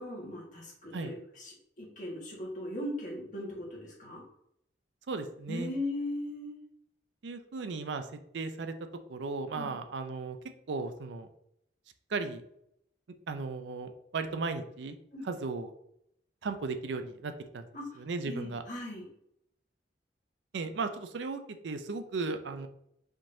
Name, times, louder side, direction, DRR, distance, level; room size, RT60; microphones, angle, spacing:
voice 1, 0.0-4.2 5.5-6.6 9.5-9.7 15.1-15.3 17.7-17.8 18.2-19.1, left 1 dB, 45° left, -3 dB, 1.5 m, -38 dB
voice 2, 5.1-5.7 7.2-8.1 8.3-8.7 9.1-10.4 10.7-11.3 12.1-12.4 13.3-15.0 15.2-15.7 16.4-17.7 18.0-18.6 20.5-22.7, right 4 dB, 85° right, 8 dB, 0.5 m, -36 dB
5.1 x 3.8 x 2.6 m, 0.74 s
head